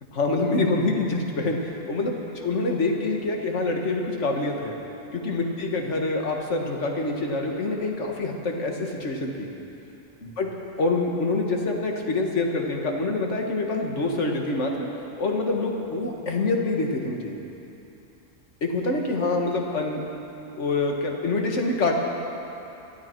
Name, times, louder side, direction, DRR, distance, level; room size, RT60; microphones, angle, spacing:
voice 1, 0.1-2.2 2.4-4.8 5.1-9.5 10.2-10.5 10.8-14.9 15.2-17.4 18.6-20.0 20.6-21.9, left 2 dB, 60° left, 1 dB, 1.8 m, -26 dB
21.5 x 13.0 x 4.5 m, 3.0 s
omnidirectional pair, 1.4 m